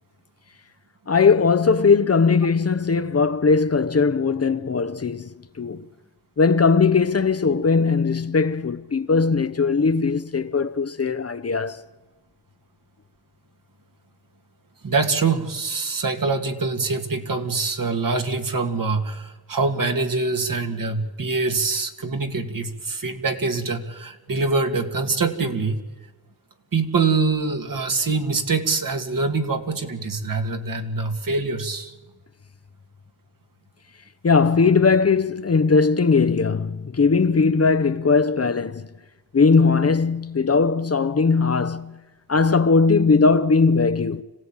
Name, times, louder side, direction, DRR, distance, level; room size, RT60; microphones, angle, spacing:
voice 1, 1.1-5.9 6.4-11.8 34.2-38.9 39.3-42.0 42.3-44.2, left 4 dB, 40° left, 0.9 m, -19 dB
voice 2, 14.8-25.8 26.7-31.9, right 4 dB, 55° right, 2.2 m, -24 dB
26.0 x 16.5 x 9.0 m
wide cardioid pair, 80°, 39 cm